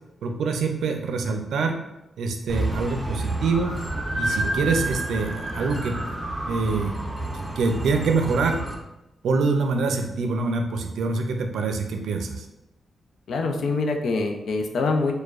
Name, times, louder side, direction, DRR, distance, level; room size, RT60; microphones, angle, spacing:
voice 1, 0.2-1.8 2.2-3.8 4.2-6.0 6.5-6.9 7.3-8.6 9.2-12.5, right 4 dB, 90° right, 4 dB, 0.4 m, -25 dB
sound 1, 2.5-8.7, right 1 dB, 10° right, 0.6 m, -29 dB
voice 2, 13.3-15.1, left 3 dB, 75° left, 4 dB, 0.5 m, -24 dB
6.5 x 2.2 x 2.4 m, 0.94 s
cardioid pair, 100°, 0 cm